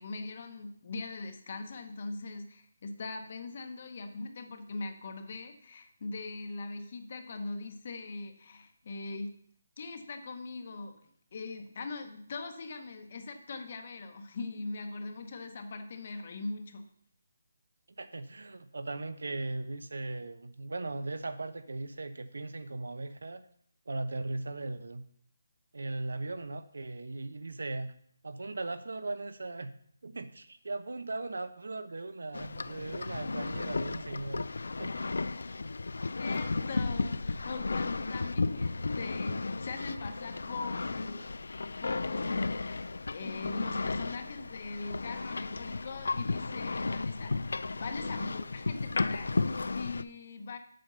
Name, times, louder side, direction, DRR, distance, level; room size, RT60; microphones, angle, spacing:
voice 1, 0.0-9.3 9.8-16.8 36.2-41.3 41.8-50.6, left 3 dB, 30° left, 7 dB, 0.9 m, -41 dB
voice 2, 18.0-23.4 23.9-25.0 25.7-27.9 28.2-29.7 30.0-34.5 34.8-34.9, right 2 dB, 80° right, 11 dB, 0.8 m, -38 dB
sound 1, 32.3-50.0, left 3 dB, 70° left, 0.4 m, -34 dB
7.7 x 5.2 x 6.7 m, 0.63 s
hypercardioid pair, 180°, 0 cm